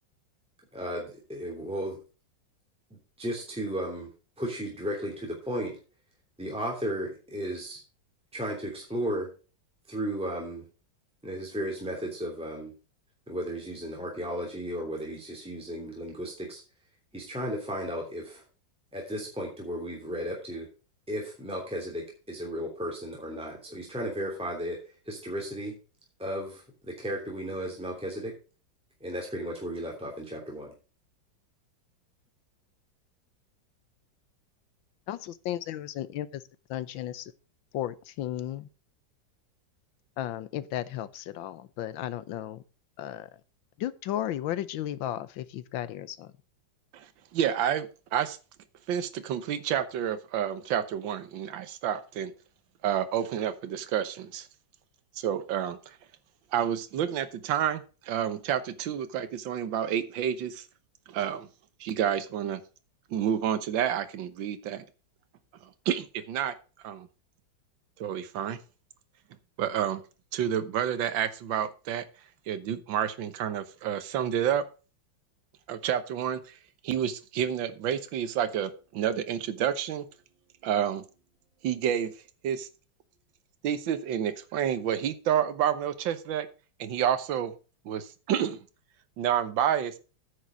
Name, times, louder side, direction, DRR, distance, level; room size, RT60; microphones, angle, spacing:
voice 1, 0.7-2.0 3.2-4.1 4.4-5.7 6.4-7.8 8.3-9.3 9.9-10.7 11.2-12.7 13.3-16.6 17.1-18.4 18.9-20.7 21.1-24.8 25.0-25.7 26.2-28.3 29.0-30.7, equal, 5° right, 3.1 m, -34 dB
voice 2, 35.1-36.4 36.7-37.3 37.7-38.7 40.2-42.6 43.0-43.3 43.8-46.3, left 12 dB, 85° left, 1.6 m, -34 dB
voice 3, 47.3-48.4 48.9-52.3 52.8-54.5 55.2-56.0 56.5-60.6 61.1-61.5 61.8-62.6 63.1-64.8 65.8-66.5 66.8-67.1 68.0-68.6 69.6-70.0 70.3-72.1 72.5-74.6 75.7-76.6 76.8-80.0 80.6-81.1 81.6-82.1 82.4-82.7 83.6-86.5 86.8-87.5 87.8-88.6 89.2-90.0, right 9 dB, 80° right, 1.7 m, -29 dB
9.5 x 6.6 x 6.2 m
omnidirectional pair, 2.0 m